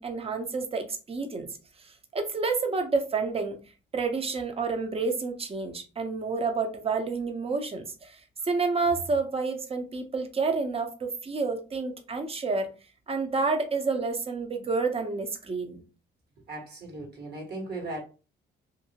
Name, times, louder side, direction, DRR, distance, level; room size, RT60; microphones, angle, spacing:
voice 1, 0.0-1.5 2.1-3.6 3.9-12.7 13.1-15.8, right 4 dB, 30° right, 6 dB, 0.6 m, -29 dB
voice 2, 16.5-18.0, right 2 dB, 55° right, 1 dB, 1.4 m, -37 dB
2.7 x 2.6 x 2.8 m, 0.34 s
cardioid pair, 90°, 20 cm